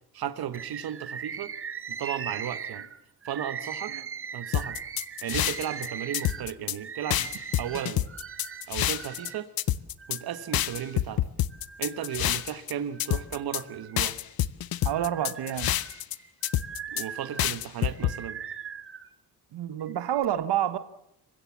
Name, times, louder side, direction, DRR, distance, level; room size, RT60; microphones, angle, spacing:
voice 1, 0.1-1.5 1.9-2.9 3.2-4.0 4.3-4.8 5.2-7.3 7.6-8.1 8.7-9.5 10.1-11.3 11.8-14.2 16.9-18.4, right 10 dB, 65° right, 1.1 m, -35 dB
Bird, 0.5-9.4 10.0-11.0 11.5-12.5 12.9-14.3 14.8-19.1 19.8-20.3, right 7 dB, 30° right, 1.0 m, -40 dB
sound 1, 4.5-5.9 6.1-6.8 7.1-9.3 9.6-10.2 10.5-12.7 13.0-13.6 14.0-16.1 16.4-17.0 17.4-18.1, left 12 dB, 60° left, 0.7 m, -27 dB
voice 2, 14.8-15.7 19.5-20.8, right 11 dB, 90° right, 1.2 m, -28 dB
26.5 x 16.0 x 7.2 m
wide cardioid pair, 165°, 40 cm